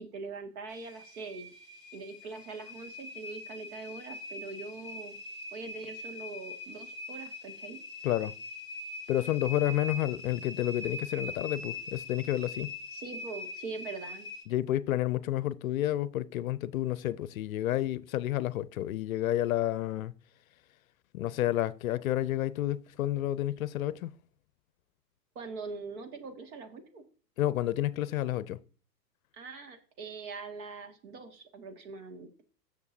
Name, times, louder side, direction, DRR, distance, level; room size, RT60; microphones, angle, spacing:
voice 1, 0.0-1.5 1.9-5.2 5.5-7.8 12.9-14.3 25.4-27.0 29.3-32.4, right 4 dB, 55° right, 2.2 m, -42 dB
sound 1, 0.7-14.4, left 2 dB, 5° right, 2.2 m, -42 dB
voice 2, 9.1-12.7 14.5-20.1 21.1-24.1 27.4-28.6, left 13 dB, 55° left, 0.6 m, -30 dB
15.0 x 6.6 x 2.8 m
hypercardioid pair, 115°, 50 cm